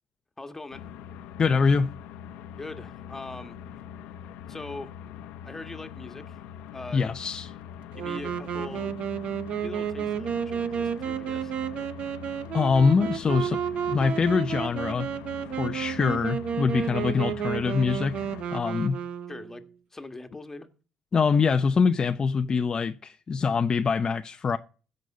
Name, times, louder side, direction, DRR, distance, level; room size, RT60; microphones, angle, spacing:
voice 1, 0.4-0.8 2.6-3.6 4.5-4.9 5.4-6.4 6.7-7.1 8.0-9.0 9.6-11.5 19.3-20.7, left 2 dB, 15° left, 1.6 m, -41 dB
sound 1, 0.7-18.4, left 9 dB, 90° left, 1.0 m, -43 dB
voice 2, 1.4-1.9 6.9-7.5 12.5-13.6 13.9-15.1 15.6-19.0 21.1-24.6, left 5 dB, 35° left, 0.7 m, -24 dB
Wind instrument woodwind instrument, 7.9-19.7, right 8 dB, 60° right, 1.1 m, -31 dB
15.5 x 5.4 x 6.6 m
cardioid pair, 95°, 2 cm